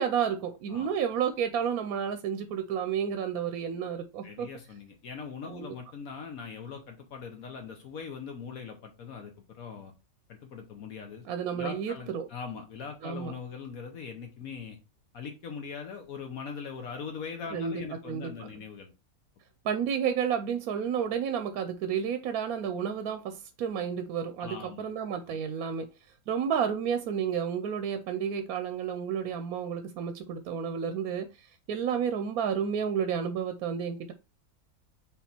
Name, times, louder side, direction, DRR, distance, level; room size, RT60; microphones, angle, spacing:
voice 1, 0.0-4.5 5.5-5.7 11.3-12.3 13.0-13.3 17.5-18.3 19.6-25.9 26.3-34.1, right 7 dB, 85° right, 1.1 m, -31 dB
voice 2, 4.2-9.9 10.3-11.3 11.5-14.8 15.1-18.9 24.4-24.9 25.3-25.4, left 6 dB, 75° left, 1.4 m, -41 dB
5.8 x 4.1 x 4.3 m
omnidirectional pair, 1.5 m